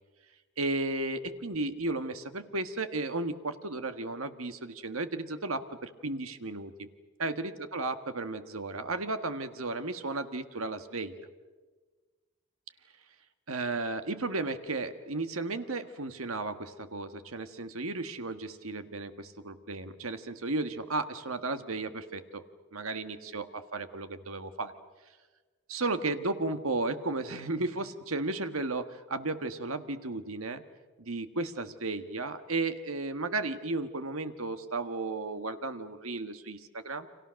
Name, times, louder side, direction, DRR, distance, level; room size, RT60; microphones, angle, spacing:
voice 1, 0.6-6.9 7.2-11.1 13.5-22.4 22.7-24.7 25.7-30.6 31.0-37.1, right 2 dB, 85° right, 9 dB, 1.6 m, -34 dB
30.0 x 25.5 x 6.4 m, 1.3 s
head